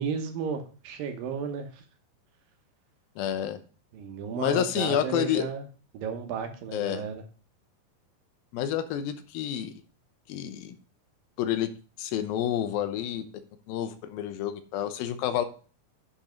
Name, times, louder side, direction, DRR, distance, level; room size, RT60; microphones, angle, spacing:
voice 1, 0.0-1.8 3.9-5.7 5.9-7.2, right 6 dB, 75° right, 6 dB, 2.7 m, -33 dB
voice 2, 3.2-3.6 4.4-5.5 6.7-7.0 8.5-9.7 10.3-10.8 11.4-11.7 12.0-13.2 13.7-15.5, left 10 dB, 80° left, 10 dB, 2.6 m, -29 dB
8.6 x 5.4 x 5.1 m, 0.38 s
omnidirectional pair, 4.2 m